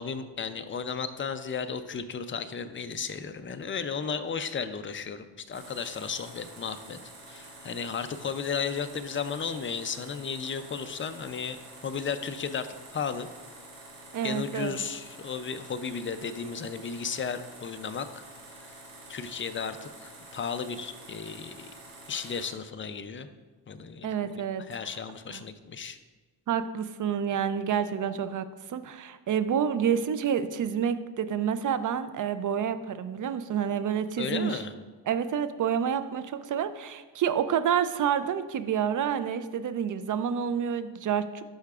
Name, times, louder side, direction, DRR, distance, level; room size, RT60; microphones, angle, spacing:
voice 1, 0.0-7.0 7.3-11.6 11.8-13.3 14.2-18.2 18.6-18.8 19.1-21.8 22.1-23.3 23.7-24.3 24.7-26.0 34.2-34.7, left 6 dB, 30° left, 10 dB, 0.4 m, -34 dB
sound 1, 5.5-22.5, right 2 dB, 75° right, 2.1 m, -48 dB
voice 2, 14.1-14.7 24.0-24.6 25.3-25.4 26.5-34.6 35.1-41.4, right 8 dB, 45° right, 12 dB, 0.5 m, -28 dB
11.5 x 5.7 x 2.4 m, 1.3 s
cardioid pair, 105°, 46 cm